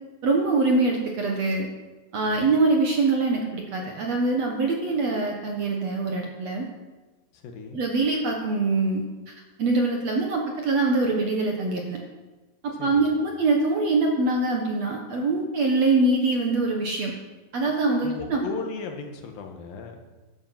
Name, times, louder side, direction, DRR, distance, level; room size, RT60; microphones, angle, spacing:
voice 1, 0.2-1.7 2.1-6.7 7.7-9.3 9.6-12.0 12.6-17.1 17.5-18.4, right 3 dB, 55° right, 1 dB, 2.0 m, -24 dB
voice 2, 2.3-2.6 7.3-7.8 12.7-13.1 18.0-20.0, left 4 dB, 70° left, 3 dB, 3.0 m, -36 dB
14.5 x 12.0 x 5.8 m, 1.2 s
omnidirectional pair, 4.5 m